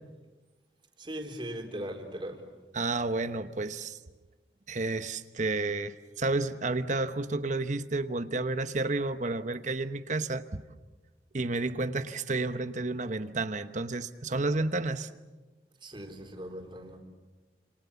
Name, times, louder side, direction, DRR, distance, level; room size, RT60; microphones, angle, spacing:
voice 1, 1.0-2.4 15.8-17.0, equal, 30° right, 4 dB, 3.7 m, -39 dB
voice 2, 2.7-4.0 4.7-10.6 11.3-15.1, right 3 dB, 45° right, 11 dB, 1.0 m, -31 dB
29.0 x 27.5 x 7.1 m, 1.2 s
head